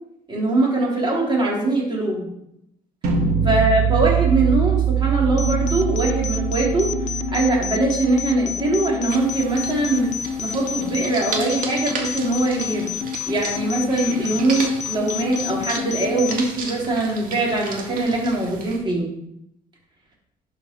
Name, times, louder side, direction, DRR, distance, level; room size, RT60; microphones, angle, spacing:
voice 1, 0.3-2.3 3.4-6.9 7.3-10.1 10.4-12.9 13.3-19.1, right 2 dB, 30° right, -3 dB, 3.7 m, -22 dB
sound 1, 3.0-9.0, right 8 dB, 70° right, 2.8 m, -23 dB
sound 2, 5.4-16.4, left 8 dB, 45° left, 0.6 m, -29 dB
sound 3, 9.1-18.8, right 3 dB, 55° right, 2.0 m, -34 dB
11.5 x 5.1 x 4.7 m, 0.80 s
cardioid pair, 110°, 17 cm